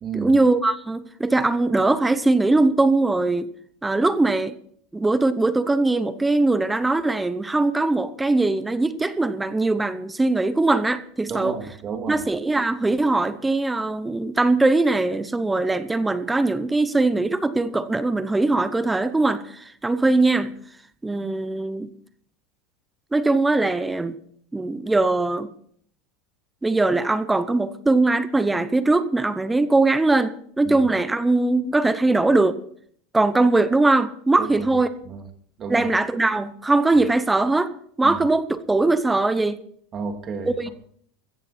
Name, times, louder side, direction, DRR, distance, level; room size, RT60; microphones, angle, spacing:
voice 1, 0.1-3.5 3.8-4.6 4.9-11.6 12.1-20.5 21.0-21.9 23.1-24.2 24.5-25.5 26.6-32.6 33.1-34.9 35.7-37.7 38.0-39.6 40.4-40.7, right 2 dB, 10° right, 0.8 m, -21 dB
voice 2, 11.3-12.2 30.7-30.8 34.4-34.6 35.1-35.2 35.6-35.9 38.0-38.2 39.9-40.7, right 6 dB, 30° right, 2.5 m, -31 dB
16.5 x 14.5 x 4.3 m
supercardioid pair, 140°, 0 cm